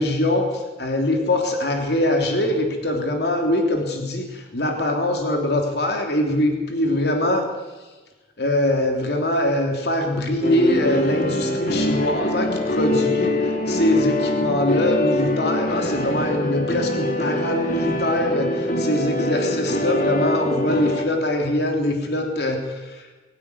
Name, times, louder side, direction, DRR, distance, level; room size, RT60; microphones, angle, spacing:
voice 1, 0.0-7.5 8.4-23.1, left 1 dB, 60° left, 3 dB, 3.2 m, -23 dB
sound 1, 10.4-21.1, left 1 dB, 45° left, 2.4 m, -24 dB
22.0 x 12.5 x 9.7 m, 1.2 s
head